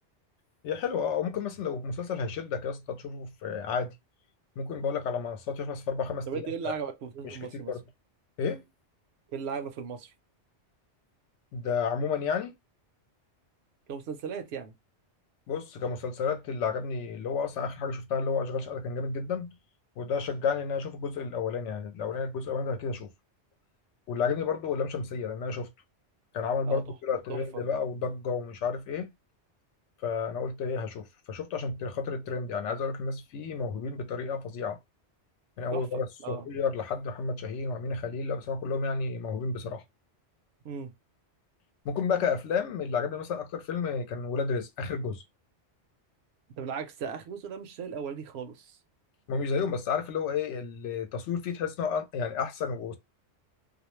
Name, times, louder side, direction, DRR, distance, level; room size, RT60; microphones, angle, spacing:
voice 1, 0.6-3.9 4.6-6.3 6.6-6.7 7.2-7.8 8.4-8.7 11.5-12.5 15.5-19.5 20.0-23.1 24.1-25.7 26.3-29.1 30.0-34.8 35.6-39.8 41.8-45.2 49.3-53.0, left 5 dB, 80° left, 0.9 m, -31 dB
voice 2, 6.3-7.7 9.3-10.1 13.9-14.7 26.6-26.8 27.1-27.6 35.7-35.8 36.2-36.5 40.6-40.9 46.6-48.8, right 6 dB, 70° right, 0.8 m, -37 dB
2.4 x 2.0 x 3.0 m
omnidirectional pair, 1.2 m